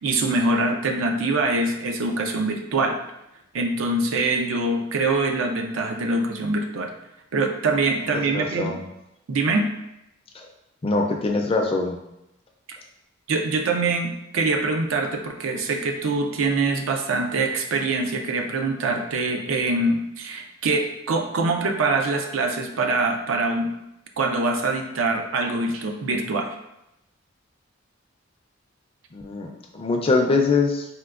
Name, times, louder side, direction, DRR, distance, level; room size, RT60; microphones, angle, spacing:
voice 1, 0.0-3.0 3.5-6.9 7.3-8.7 9.3-9.7 12.7-12.8 13.3-23.7 24.2-26.5, right 3 dB, 90° right, 3 dB, 0.4 m, -24 dB
voice 2, 8.1-8.8 10.3-10.5 10.8-12.0 29.1-30.9, left 3 dB, 30° left, 2 dB, 0.4 m, -23 dB
4.3 x 2.2 x 2.4 m, 0.87 s
head